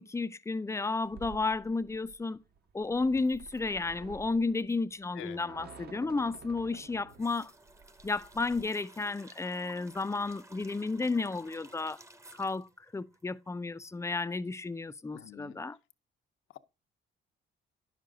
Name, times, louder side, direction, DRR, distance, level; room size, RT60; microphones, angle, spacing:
voice 1, 0.0-2.4 2.7-7.5 8.0-12.0 12.3-12.7 12.9-15.8, left 3 dB, 15° left, 0.5 m, -32 dB
sound 1, 1.0-8.6, right 6 dB, 50° right, 1.1 m, -51 dB
sound 2, 6.7-13.7 14.0-14.1, right 2 dB, 15° right, 0.9 m, -55 dB
voice 2, 15.1-15.6 16.5-16.6, left 12 dB, 80° left, 0.8 m, -46 dB
10.5 x 6.6 x 3.9 m
cardioid pair, 90°, 20 cm